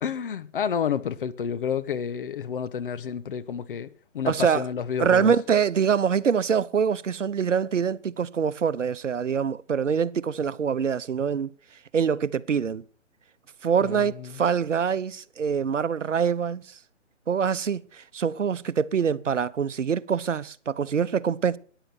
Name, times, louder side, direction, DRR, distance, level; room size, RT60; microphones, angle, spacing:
voice 1, 0.0-3.9 4.1-5.3 13.8-14.4, left 7 dB, 45° left, 1.0 m, -30 dB
voice 2, 4.3-4.6 5.0-11.5 11.9-12.8 13.6-16.7 17.3-21.6, right 7 dB, 80° right, 0.8 m, -24 dB
14.0 x 10.0 x 6.1 m
figure-of-eight pair, 140°, 37 cm